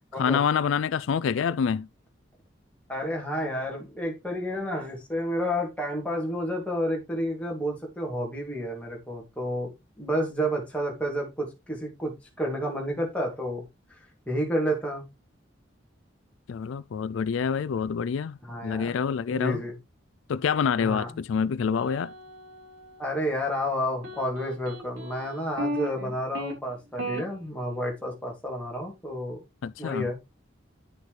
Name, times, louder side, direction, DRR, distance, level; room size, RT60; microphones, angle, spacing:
voice 1, 0.2-1.9 16.5-18.4 18.6-19.6 20.3-22.1 29.6-30.1, left 6 dB, 75° left, 0.3 m, -26 dB
voice 2, 2.9-9.7 10.0-12.1 12.4-13.6 14.3-15.0 18.4-18.9 19.3-19.7 20.8-21.1 23.0-29.4 29.8-30.2, equal, 5° left, 2.6 m, -30 dB
sound 1, 21.7-23.3 24.0-26.5 27.0-27.2, right 1 dB, 90° right, 4.9 m, -36 dB
10.0 x 6.5 x 3.2 m
head